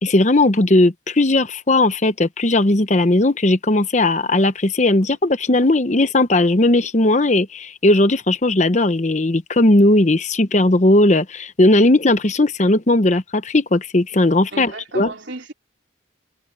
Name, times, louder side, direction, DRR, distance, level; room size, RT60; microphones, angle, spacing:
voice 1, 0.0-15.1, left 2 dB, 35° left, 0.9 m, -17 dB
voice 2, 14.5-15.5, right 2 dB, 65° right, 3.7 m, -34 dB
head